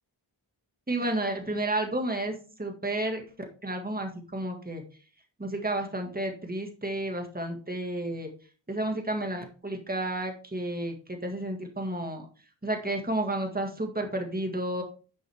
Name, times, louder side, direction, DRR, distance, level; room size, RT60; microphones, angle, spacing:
voice 1, 0.9-3.2 3.6-4.8 5.4-8.3 8.7-12.3 12.6-14.8, right 1 dB, 20° right, 3 dB, 1.9 m, -31 dB
11.0 x 6.1 x 3.5 m, 0.36 s
wide cardioid pair, 60°, 46 cm